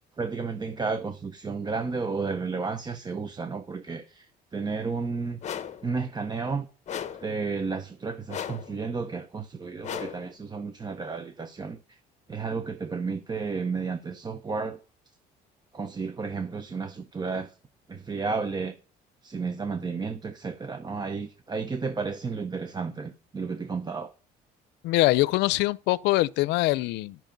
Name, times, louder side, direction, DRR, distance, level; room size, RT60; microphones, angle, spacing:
voice 1, 0.2-5.4 5.8-6.7 7.2-12.0 12.3-14.8 15.7-17.6 17.9-18.7 19.2-24.1, right 4 dB, 25° right, 0.8 m, -32 dB
sound 1, 5.4-5.9 6.9-7.3 8.3-8.8 9.8-10.3, left 8 dB, 45° left, 1.1 m, -36 dB
voice 2, 24.8-27.2, left 19 dB, 90° left, 0.5 m, -23 dB
11.5 x 6.1 x 5.2 m
cardioid pair, 110°, 17 cm